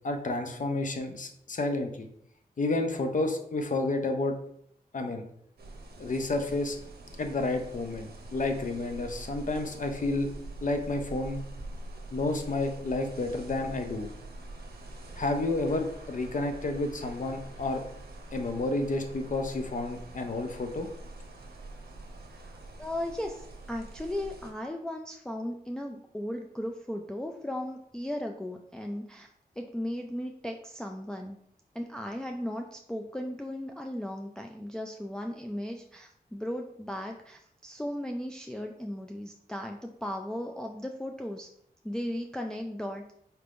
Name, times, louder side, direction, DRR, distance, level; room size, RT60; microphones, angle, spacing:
voice 1, 0.0-2.1 2.6-4.4 4.9-5.3 6.0-6.8 7.2-10.3 10.6-11.4 12.1-14.1 15.2-17.8 18.3-20.9, left 2 dB, 50° left, 6 dB, 0.6 m, -30 dB
sound 1, 5.6-24.5, right 2 dB, 70° right, 0.7 m, -45 dB
voice 2, 22.3-29.3 29.6-31.4 31.7-41.5 41.8-43.1, left 1 dB, 5° left, 3 dB, 0.3 m, -36 dB
4.4 x 3.4 x 2.5 m, 0.70 s
cardioid pair, 55°, 16 cm